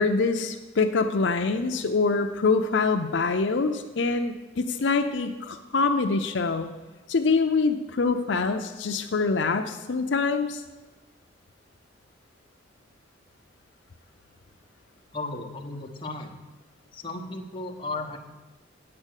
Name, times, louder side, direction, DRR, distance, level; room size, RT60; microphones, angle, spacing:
voice 1, 0.0-6.7 7.1-10.6, left 4 dB, 70° left, 5 dB, 0.5 m, -25 dB
voice 2, 15.1-16.4 16.9-18.2, left 2 dB, 25° left, 1 dB, 1.0 m, -35 dB
8.7 x 8.1 x 6.5 m, 1.2 s
head